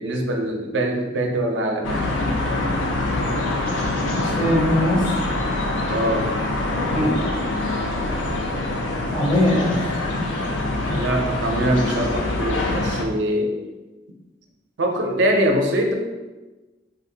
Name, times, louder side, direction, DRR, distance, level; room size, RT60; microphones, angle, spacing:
voice 1, 0.0-2.1 5.9-6.3 10.7-13.5 14.8-15.9, right 1 dB, 70° right, 2 dB, 0.5 m, -23 dB
sound 1, 1.8-13.0, left 2 dB, 85° left, 0.5 m, -24 dB
voice 2, 4.2-5.2 6.9-7.2 9.1-10.3 10.8-11.0, left 1 dB, 25° left, -5 dB, 0.5 m, -22 dB
4.0 x 2.2 x 2.7 m, 1.1 s
head